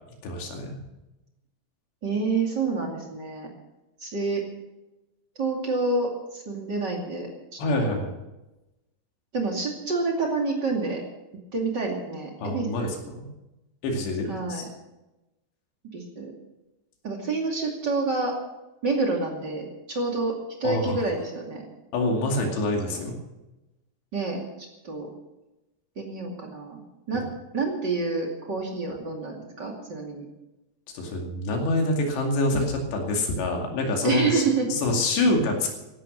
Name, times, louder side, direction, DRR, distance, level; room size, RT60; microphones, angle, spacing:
voice 1, 0.2-0.8 7.6-8.1 12.4-13.3 13.8-14.7 20.6-21.0 21.9-23.2 30.9-35.7, left 2 dB, 75° left, 2 dB, 4.6 m, -26 dB
voice 2, 2.0-3.5 4.0-4.4 5.4-8.1 9.3-11.0 11.5-12.9 14.3-14.6 15.9-16.3 17.0-18.3 18.8-20.3 20.6-21.6 22.8-23.0 24.1-24.4 24.8-25.1 26.0-26.8 27.1-27.2 27.5-30.3 34.0-34.7, right 3 dB, 30° right, 0 dB, 2.3 m, -28 dB
16.0 x 12.5 x 6.4 m, 1.0 s
omnidirectional pair, 5.0 m